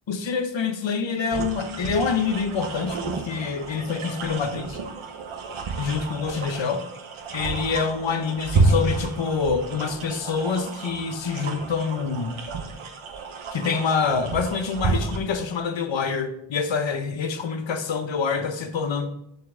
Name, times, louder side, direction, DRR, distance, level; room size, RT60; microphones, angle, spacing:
voice 1, 0.1-4.8 5.8-6.8 7.3-12.3 13.5-19.1, left 5 dB, 70° left, 8 dB, 0.9 m, -26 dB
sound 1, 1.3-15.2, right 3 dB, 85° right, 1.1 m, -30 dB
7.0 x 6.7 x 3.7 m, 0.76 s
wide cardioid pair, 140°, 48 cm